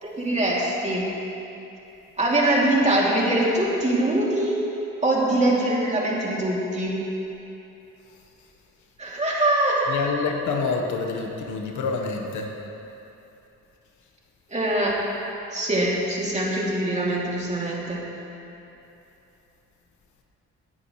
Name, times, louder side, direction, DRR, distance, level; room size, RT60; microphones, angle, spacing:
voice 1, 0.0-1.1 2.2-4.6 5.0-7.0 9.0-9.9 14.5-14.9 15.5-18.0, right 1 dB, 25° right, -5 dB, 2.9 m, -23 dB
voice 2, 9.9-12.5, left 4 dB, 75° left, 2 dB, 1.4 m, -27 dB
19.0 x 10.0 x 3.3 m, 2.9 s
cardioid pair, 90°, 30 cm